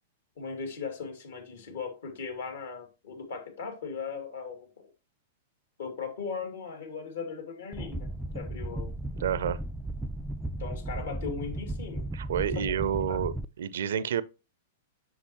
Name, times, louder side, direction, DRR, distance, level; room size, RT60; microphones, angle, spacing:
voice 1, 0.4-4.9 5.8-8.9 10.6-12.0 12.5-13.2, left 5 dB, 65° left, 2.4 m, -38 dB
sound 1, 7.7-13.4, right 1 dB, 5° right, 0.4 m, -35 dB
voice 2, 9.2-9.6 12.1-14.2, right 9 dB, 65° right, 0.5 m, -29 dB
7.1 x 6.6 x 2.9 m
figure-of-eight pair, 100°, 0 cm